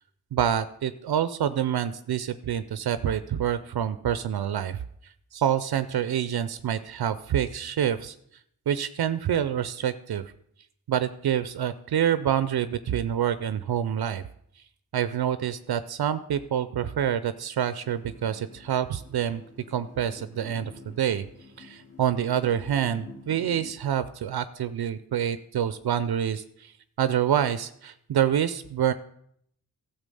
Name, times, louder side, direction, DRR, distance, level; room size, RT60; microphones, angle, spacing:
voice 1, 0.3-4.8 5.3-8.1 8.7-10.2 10.9-14.2 14.9-19.4 19.7-20.7 21.0-21.2 21.6-26.7 27.0-28.9, right 9 dB, 85° right, 13 dB, 0.6 m, -27 dB
sound 1, 17.8-23.7, left 3 dB, 40° left, 2.3 m, -48 dB
12.5 x 7.0 x 5.4 m, 0.70 s
cardioid pair, 55°, 37 cm